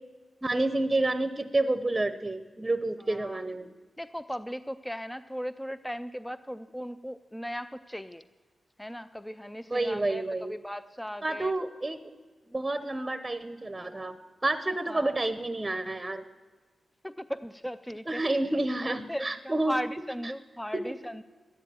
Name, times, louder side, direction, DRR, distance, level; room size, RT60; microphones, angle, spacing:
voice 1, 0.4-3.7 9.7-10.5 11.2-12.0 12.5-14.1 14.4-16.2 18.1-19.8 20.8-20.9, right 2 dB, 20° right, 10 dB, 0.8 m, -29 dB
voice 2, 3.1-3.4 4.0-8.3 8.8-11.5 14.9-15.2 17.0-18.2 18.8-21.2, equal, 5° left, 13 dB, 0.5 m, -37 dB
13.5 x 10.0 x 9.1 m, 1.4 s
cardioid pair, 80°, 0 cm